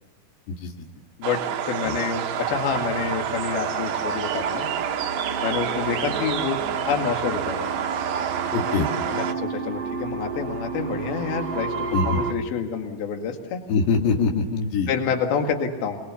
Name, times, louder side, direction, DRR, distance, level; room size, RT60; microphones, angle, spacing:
sound 1, 1.2-9.3, right 9 dB, 75° right, 1.7 m, -28 dB
voice 1, 1.7-4.7 5.4-7.7 9.1-13.6 14.9-16.0, left 6 dB, 65° left, 3 dB, 3.7 m, -28 dB
sound 2, 2.5-12.3, right 4 dB, 55° right, 1.5 m, -32 dB
sound 3, 4.9-8.6 9.0-9.1, left 4 dB, 50° left, 3.2 m, -41 dB
voice 2, 8.5-8.9 11.9-12.2 13.7-14.9, left 4 dB, 85° left, 2 dB, 4.1 m, -23 dB
27.5 x 21.0 x 7.1 m, 1.1 s
omnidirectional pair, 4.8 m